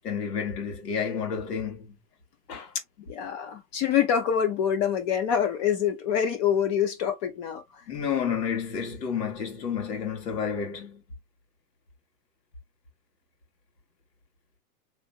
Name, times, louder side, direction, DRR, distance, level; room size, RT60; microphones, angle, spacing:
voice 1, 0.0-2.0 2.5-2.7 3.0-3.1 7.9-11.0, left 7 dB, 85° left, 2.8 m, -30 dB
voice 2, 3.1-7.8, left 8 dB, 25° left, 0.7 m, -26 dB
3.9 x 3.4 x 2.4 m
supercardioid pair, 165°, 48 cm